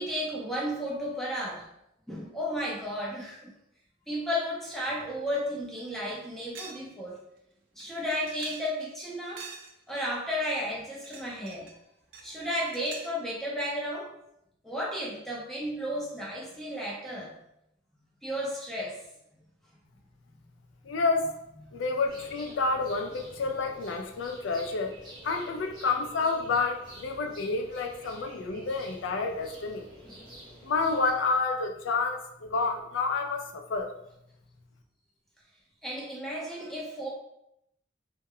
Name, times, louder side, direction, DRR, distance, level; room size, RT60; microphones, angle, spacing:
voice 1, 0.0-1.6 2.1-3.5 4.1-7.2 7.8-9.4 9.9-11.7 12.2-14.1 14.6-17.4 18.2-19.0 21.7-21.8 30.0-30.2 35.8-37.1, equal, ahead, -5 dB, 0.5 m, -33 dB
sound 1, 5.3-5.4 5.8-5.9 6.5-6.9 7.2-7.3 7.8-8.9 9.4-10.0 10.8-11.8 12.1-13.2, right 5 dB, 85° right, 0.4 m, -46 dB
voice 2, 20.8-21.2 21.7-24.9 25.2-29.8 30.6-33.9, left 4 dB, 75° left, 4 dB, 0.4 m, -29 dB
sound 2, 22.1-31.1, right 1 dB, 25° right, 0.9 m, -49 dB
2.1 x 2.1 x 3.5 m, 0.80 s
head